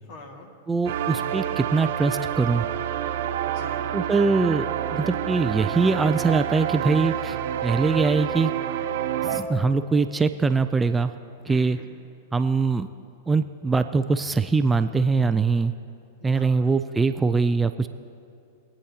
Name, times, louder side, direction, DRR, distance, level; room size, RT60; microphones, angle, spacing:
voice 1, 0.0-0.5 3.4-3.9 11.5-11.9 16.2-17.0, left 3 dB, 50° left, 2 dB, 2.0 m, -46 dB
voice 2, 0.7-2.7 3.9-7.4 7.6-8.5 9.2-11.1 11.5-11.8 12.3-12.9 13.3-15.7 16.2-17.9, right 4 dB, 15° right, 10 dB, 0.4 m, -22 dB
sound 1, 0.9-9.4, right 10 dB, 65° right, 0.6 m, -28 dB
22.5 x 8.9 x 2.8 m, 2.6 s
hypercardioid pair, 100°, 0 cm